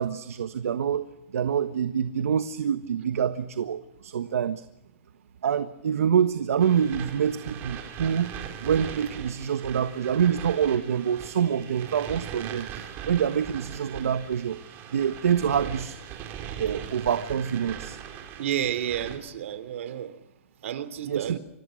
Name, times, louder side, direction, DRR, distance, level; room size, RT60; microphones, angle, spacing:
voice 1, 0.0-4.6 5.4-14.6 14.9-16.0 16.6-18.0 21.1-21.4, right 8 dB, 85° right, 1.4 m, -26 dB
sound 1, 6.6-19.2, right 9 dB, 30° right, 4.7 m, -40 dB
voice 2, 18.4-20.2 20.6-21.4, right 10 dB, 65° right, 2.9 m, -31 dB
29.5 x 25.5 x 6.4 m
hypercardioid pair, 150°, 8 cm